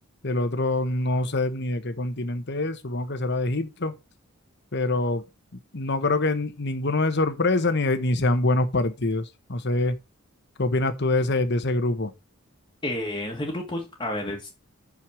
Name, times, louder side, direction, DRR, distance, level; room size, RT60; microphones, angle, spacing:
voice 1, 0.2-4.0 4.7-5.3 5.7-10.0 10.6-12.1, left 2 dB, 55° left, 1.2 m, -25 dB
voice 2, 12.8-14.5, left 1 dB, 20° left, 1.7 m, -30 dB
6.5 x 6.1 x 6.3 m
head